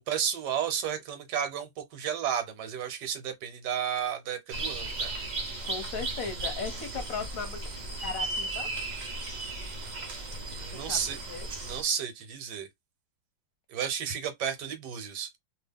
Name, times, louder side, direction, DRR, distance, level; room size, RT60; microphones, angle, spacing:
voice 1, 0.1-5.1 10.4-11.2 11.6-12.7 13.7-15.3, right 8 dB, 70° right, 1.4 m, -32 dB
sound 1, 4.5-11.8, right 2 dB, 55° right, 0.5 m, -35 dB
voice 2, 5.6-7.7 8.0-8.7 10.7-11.5, left 5 dB, 60° left, 1.1 m, -37 dB
2.8 x 2.7 x 3.5 m
omnidirectional pair, 2.0 m